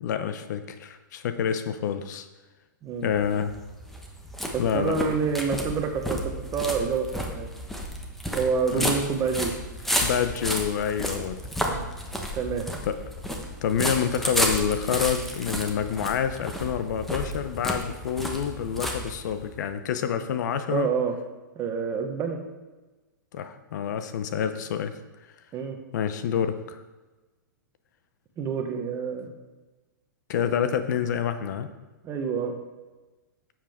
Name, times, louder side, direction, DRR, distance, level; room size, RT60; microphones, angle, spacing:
voice 1, 0.0-2.3 3.0-3.5 4.6-4.9 8.7-8.9 10.0-11.4 12.9-13.0 13.6-20.9 23.3-25.0 25.9-26.8 30.3-31.7, left 8 dB, 60° left, 10 dB, 0.8 m, -27 dB
voice 2, 2.8-3.1 4.5-6.2 6.5-7.5 8.3-9.5 11.6-11.9 12.3-12.7 20.7-21.1 21.5-22.4 25.5-25.8 28.4-29.3 32.0-32.5, right 5 dB, 25° right, 4 dB, 1.2 m, -27 dB
sound 1, 3.1-19.6, equal, ahead, 1.1 m, -32 dB
10.0 x 7.5 x 3.6 m, 1.2 s
hypercardioid pair, 130°, 11 cm